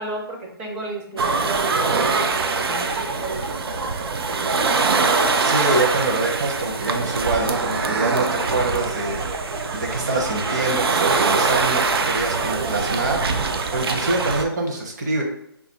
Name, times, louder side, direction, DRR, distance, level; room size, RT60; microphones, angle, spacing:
voice 1, 0.0-4.6, right 2 dB, 10° right, -1 dB, 0.4 m, -33 dB
sound 1, 1.2-14.4, right 4 dB, 70° right, 0.4 m, -23 dB
voice 2, 5.4-9.2 9.7-13.3 13.7-15.2, right 2 dB, 45° right, 1 dB, 0.8 m, -25 dB
2.7 x 2.5 x 3.9 m, 0.77 s
hypercardioid pair, 160°, 13 cm